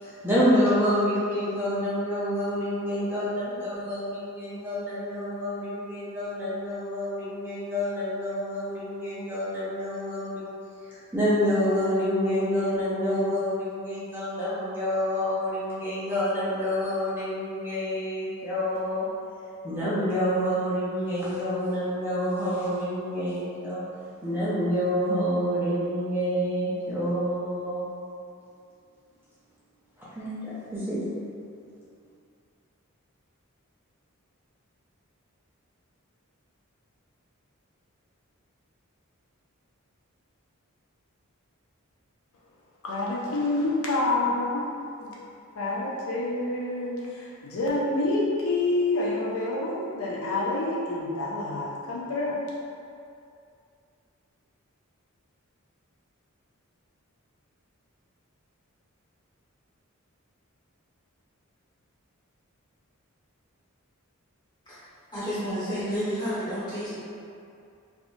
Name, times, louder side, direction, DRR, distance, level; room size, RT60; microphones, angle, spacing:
voice 1, 0.0-10.4 10.9-19.1 19.6-23.8 24.2-27.9 30.2-31.2, equal, 10° right, -10 dB, 0.5 m, -28 dB
voice 2, 42.8-44.7 45.0-45.1 45.6-52.4, left 2 dB, 75° left, -5 dB, 0.5 m, -27 dB
voice 3, 65.1-66.9, equal, 20° left, -12 dB, 1.2 m, -30 dB
3.5 x 2.5 x 2.5 m, 2.5 s
head